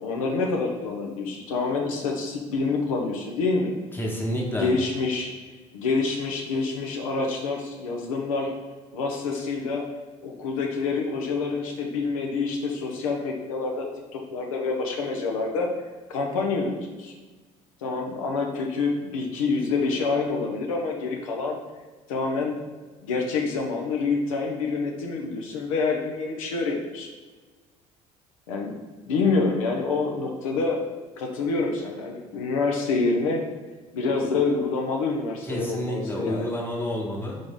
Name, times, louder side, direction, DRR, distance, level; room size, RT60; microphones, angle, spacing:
voice 1, 0.0-3.7 4.6-5.3 5.7-8.5 8.9-9.8 10.2-13.9 14.1-15.7 16.1-17.1 17.8-21.6 22.1-22.6 23.0-27.1 28.5-28.8 29.1-30.8 31.2-33.4 33.9-36.6, left 4 dB, 90° left, 1 dB, 0.6 m, -27 dB
voice 2, 3.9-4.7 35.4-37.4, equal, 10° left, -1 dB, 1.1 m, -29 dB
3.8 x 3.5 x 3.6 m, 1.3 s
hypercardioid pair, 65°, 17 cm